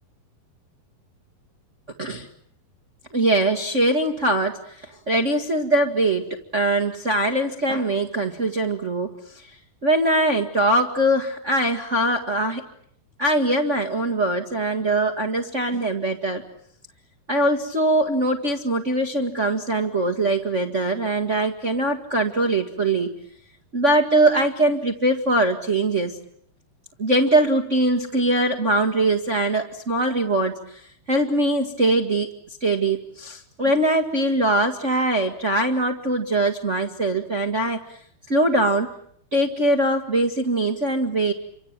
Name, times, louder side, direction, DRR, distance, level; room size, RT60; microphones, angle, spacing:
voice 1, 3.1-9.1 9.8-12.6 13.2-16.4 17.3-23.1 23.7-26.1 27.0-30.6 31.1-32.3 32.6-37.8 38.3-38.9 39.3-41.3, right 1 dB, 35° right, 5 dB, 1.2 m, -22 dB
30.0 x 25.5 x 7.5 m, 0.67 s
omnidirectional pair, 4.5 m